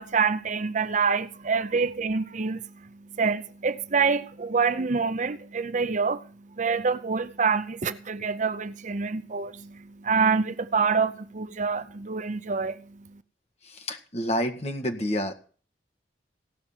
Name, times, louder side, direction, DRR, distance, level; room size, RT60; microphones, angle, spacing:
voice 1, 0.0-13.2, right 5 dB, 45° right, 0.6 m, -27 dB
voice 2, 13.6-15.3, equal, 35° left, 1.9 m, -29 dB
17.5 x 6.0 x 7.3 m
head